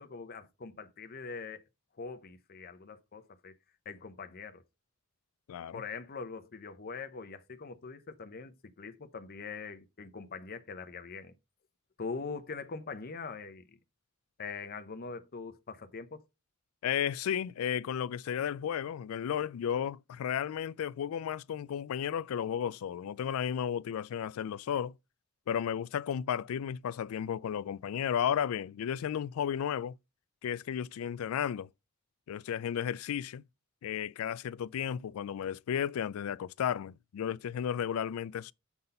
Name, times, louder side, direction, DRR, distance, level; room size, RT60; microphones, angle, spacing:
voice 1, 0.0-1.6 2.0-3.6 3.9-4.6 5.7-11.4 12.0-13.8 14.4-16.2, left 4 dB, 45° left, 0.7 m, -42 dB
voice 2, 5.5-5.8 16.8-24.9 25.5-29.9 30.4-31.7 32.3-33.4 33.8-38.5, left 8 dB, 75° left, 0.3 m, -33 dB
7.0 x 4.0 x 5.4 m
head